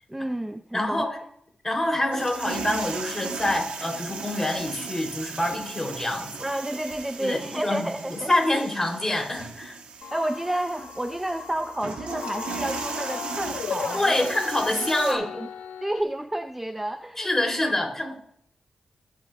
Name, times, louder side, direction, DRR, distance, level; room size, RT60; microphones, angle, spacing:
voice 1, 0.1-1.1 6.4-8.6 10.1-14.4 14.7-15.5 15.8-17.7, right 1 dB, 10° right, 8 dB, 0.5 m, -30 dB
voice 2, 0.7-1.1 1.6-6.3 7.2-9.8 13.9-15.2 17.2-18.1, left 1 dB, 20° left, 0 dB, 3.6 m, -26 dB
sound 1, 2.1-15.1, right 5 dB, 85° right, 1.5 m, -37 dB
sound 2, 10.0-16.0, left 7 dB, 85° left, 0.5 m, -37 dB
19.0 x 8.9 x 2.5 m, 0.69 s
cardioid pair, 75°, 2 cm